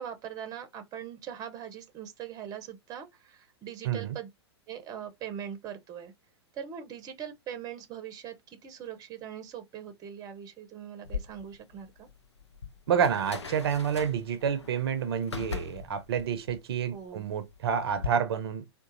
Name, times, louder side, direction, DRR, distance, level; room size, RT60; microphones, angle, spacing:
voice 1, 0.0-4.3 4.7-6.1 6.5-12.1 16.9-17.2, right 9 dB, 25° right, 0.7 m, -41 dB
voice 2, 3.8-4.2 12.9-18.6, right 7 dB, 65° right, 0.6 m, -29 dB
Dishwasher Close, 11.0-18.1, left 6 dB, 85° left, 0.6 m, -41 dB
3.7 x 2.4 x 2.5 m
figure-of-eight pair, 105°, 14 cm